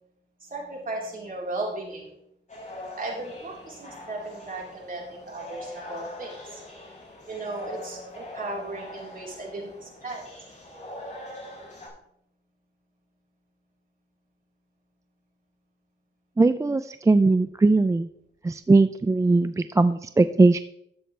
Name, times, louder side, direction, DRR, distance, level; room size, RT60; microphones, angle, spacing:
voice 1, 0.4-2.1 3.0-6.6 7.3-10.2, right 2 dB, 45° right, -3 dB, 3.9 m, -36 dB
sound 1, 2.5-11.9, left 1 dB, 35° left, 4.6 m, -43 dB
voice 2, 16.4-18.1 18.4-20.6, right 3 dB, 15° right, 12 dB, 0.3 m, -20 dB
12.5 x 7.7 x 3.3 m, 0.75 s
cardioid pair, 85°, 20 cm